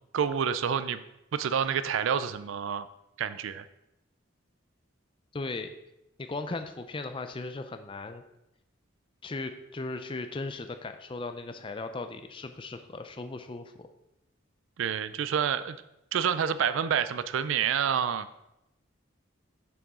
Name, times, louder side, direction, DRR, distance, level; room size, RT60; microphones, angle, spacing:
voice 1, 0.1-1.0 1.3-2.9 3.2-3.6 14.8-15.8 16.1-18.4, right 7 dB, 75° right, 14 dB, 0.3 m, -28 dB
voice 2, 5.3-5.7 6.2-8.2 9.2-13.9, left 3 dB, 25° left, 8 dB, 0.4 m, -37 dB
6.9 x 6.1 x 3.6 m, 0.87 s
head